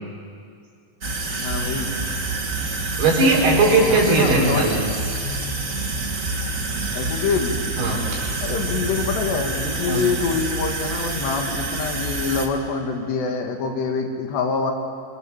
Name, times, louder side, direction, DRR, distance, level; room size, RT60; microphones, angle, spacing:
sound 1, 1.0-12.5, right 2 dB, 90° right, 0.7 m, -28 dB
voice 1, 1.4-1.9 3.8-4.8 6.9-7.6 8.4-14.7, left 4 dB, 75° left, 3 dB, 4.2 m, -25 dB
sound 2, 1.5-9.5, right 3 dB, 25° right, 2.5 m, -34 dB
voice 2, 3.0-4.9 7.8-8.2 9.9-10.0, right 2 dB, 65° right, -2 dB, 6.7 m, -18 dB
25.5 x 23.5 x 7.3 m, 2.3 s
omnidirectional pair, 4.9 m